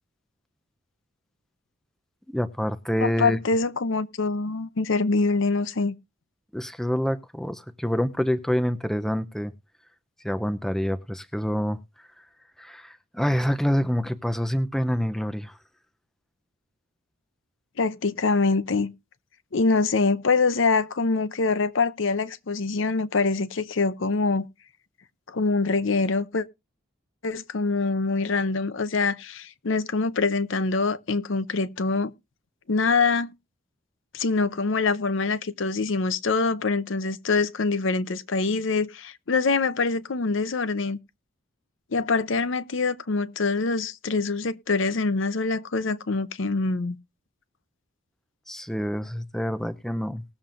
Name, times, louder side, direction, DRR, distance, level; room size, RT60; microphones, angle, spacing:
voice 1, 2.3-3.4 6.5-9.5 10.2-12.1 12.6-15.6 48.5-50.2, equal, ahead, 0.5 m, -27 dB
voice 2, 3.0-5.9 17.8-18.9 19.5-24.5 25.3-26.4 27.2-32.1 32.7-33.3 34.1-41.0 41.9-47.0, left 4 dB, 65° left, 0.7 m, -24 dB
19.5 x 7.2 x 2.5 m
head